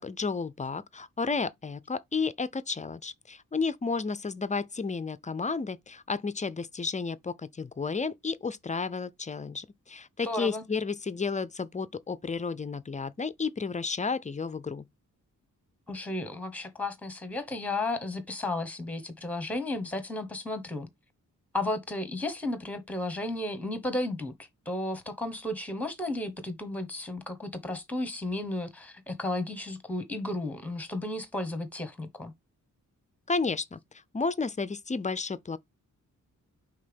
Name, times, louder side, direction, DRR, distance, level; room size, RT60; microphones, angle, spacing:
voice 1, 0.0-14.8 33.3-33.8 34.1-35.6, left 4 dB, 25° left, 0.4 m, -32 dB
voice 2, 10.2-10.7 15.9-20.9 21.5-32.3, left 2 dB, 5° left, 1.1 m, -33 dB
5.5 x 3.5 x 5.2 m
wide cardioid pair, 140°, 33 cm